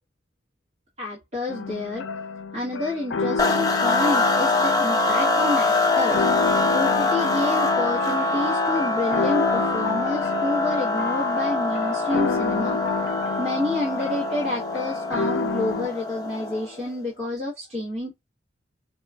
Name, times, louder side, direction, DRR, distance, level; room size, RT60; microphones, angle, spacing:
voice 1, 1.0-2.0 2.5-6.2 6.7-12.8 13.4-18.1, left 2 dB, 35° right, 1.2 m, -29 dB
sound 1, 1.5-15.9, left 4 dB, 85° left, 0.5 m, -30 dB
sound 2, 3.4-16.8, left 3 dB, 20° left, 0.6 m, -24 dB
4.8 x 2.3 x 2.3 m
head